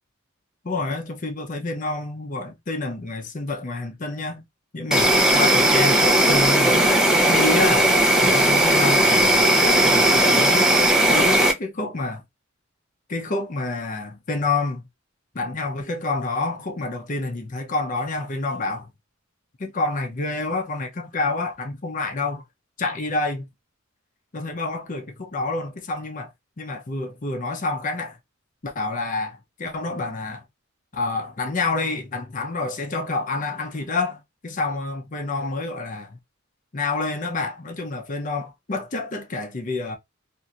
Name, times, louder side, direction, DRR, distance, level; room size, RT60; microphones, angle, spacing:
voice 1, 0.6-4.4 4.7-7.9 8.2-10.7 11.1-12.2 13.1-14.9 15.3-18.9 19.6-22.4 22.8-23.5 24.3-26.3 26.6-28.2 28.6-30.4 30.9-36.2 36.7-40.0, left 3 dB, 40° left, 0.6 m, -28 dB
Insect, 4.9-11.5, right 1 dB, 5° right, 0.5 m, -17 dB
2.9 x 2.6 x 2.4 m
head